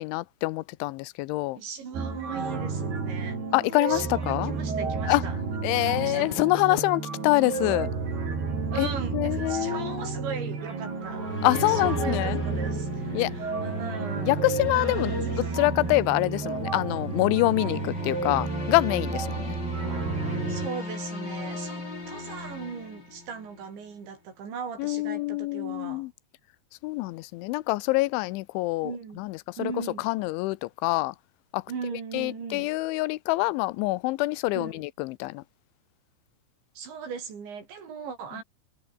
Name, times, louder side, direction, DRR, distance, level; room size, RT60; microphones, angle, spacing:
voice 1, 0.0-1.6 3.5-4.5 5.1-5.2 5.6-7.9 8.8-8.9 9.1-10.1 11.4-12.4 13.1-13.3 14.2-15.1 15.6-19.6 24.8-26.1 26.8-28.9 29.2-29.7 30.0-31.1 31.5-31.6 32.1-35.4, left 21 dB, 85° left, 3.2 m, -26 dB
voice 2, 1.6-3.4 3.8-6.9 8.7-11.2 11.5-14.5 15.1-15.6 15.9-16.4 20.5-26.1 28.8-29.2 29.6-30.1 31.7-32.7 34.5-34.8 36.8-38.4, right 6 dB, 75° right, 7.9 m, -38 dB
sound 1, 1.9-20.7, right 4 dB, 60° right, 9.3 m, -31 dB
sound 2, 10.8-23.6, left 3 dB, 25° left, 5.5 m, -37 dB
omnidirectional pair, 5.3 m